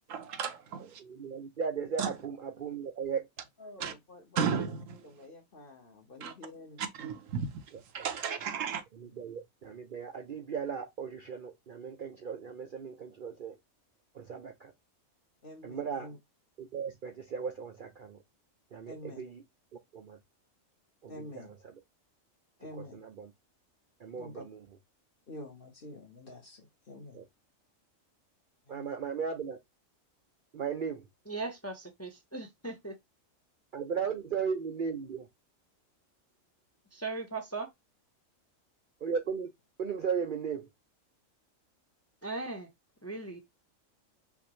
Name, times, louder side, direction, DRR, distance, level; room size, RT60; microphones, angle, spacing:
voice 1, 0.1-1.0 2.0-2.1 3.8-3.9 4.4-5.1 6.2-6.3 6.8-7.6 7.9-8.8, right 6 dB, 70° right, 1.1 m, -34 dB
voice 2, 0.8-3.3 8.0-8.4 8.9-13.6 14.1-14.7 15.6-16.1 16.6-18.2 18.7-19.4 19.9-20.2 21.0-21.7 22.8-23.3 24.0-24.7 27.1-27.2 28.7-29.6 30.5-31.1 33.7-35.3 39.0-39.5 39.8-40.7, right 6 dB, 50° right, 0.6 m, -36 dB
voice 3, 3.6-4.6 5.0-6.9 15.4-16.2 18.9-19.3 21.1-21.6 22.6-23.0 24.1-24.4 25.3-27.2 28.6-28.9, left 1 dB, 45° left, 1.4 m, -48 dB
voice 4, 31.3-32.9 36.9-37.7 42.2-42.7 43.0-43.4, right 3 dB, 15° left, 0.7 m, -38 dB
5.7 x 2.6 x 3.1 m
omnidirectional pair, 1.4 m